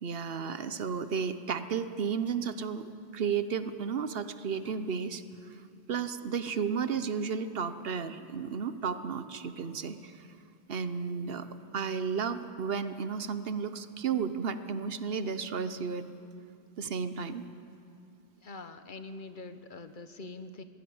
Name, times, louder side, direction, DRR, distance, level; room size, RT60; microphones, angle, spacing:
voice 1, 0.0-5.6 5.9-10.3 10.7-11.5 11.7-16.1 16.8-17.4, right 6 dB, 65° right, 11 dB, 1.0 m, -33 dB
voice 2, 18.4-20.6, left 3 dB, 50° left, 10 dB, 1.0 m, -44 dB
21.0 x 16.0 x 8.6 m, 2.5 s
omnidirectional pair, 1.1 m